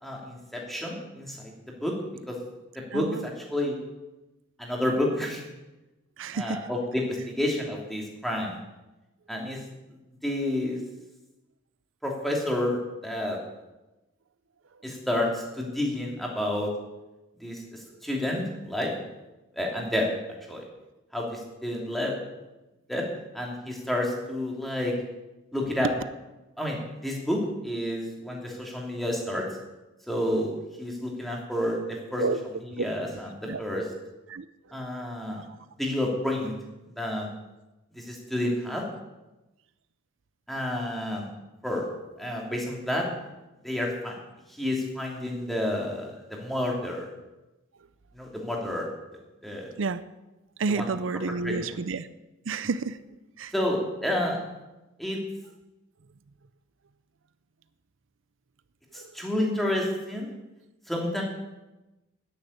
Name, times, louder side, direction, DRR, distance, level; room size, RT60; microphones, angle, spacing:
voice 1, 0.0-1.5 1.8-1.9 2.3-2.4 2.9-3.8 4.6-5.4 6.3-8.6 9.3-9.6 10.2-10.8 12.0-13.4 14.8-16.7 17.4-18.9 19.5-20.1 20.5-20.6 21.1-22.1 22.9-23.0 23.3-24.9 25.5-25.9 26.6-29.4 30.1-30.5 30.8-32.2 32.8-33.3 33.6-33.8 34.7-35.4 35.8-36.5 36.9-37.3 37.9-38.8 40.5-41.3 41.6-41.8 42.2-43.1 43.6-44.1 44.5-47.1 48.1-48.9 49.4-49.7 50.7-50.8 51.4-51.5 53.5-54.4 55.0-55.2 58.9-60.3 60.9-61.2, left 1 dB, ahead, -2 dB, 2.7 m, -29 dB
voice 2, 2.9-3.3 6.2-6.7 25.8-25.9 32.2-32.4 32.8-32.9 33.1-33.2 33.5-33.6 34.3-34.8 49.8-50.0 50.6-52.1 52.5-53.0 53.4-53.5 58.9-59.1, right 4 dB, 70° right, 14 dB, 0.6 m, -30 dB
10.5 x 10.0 x 8.4 m, 1.0 s
head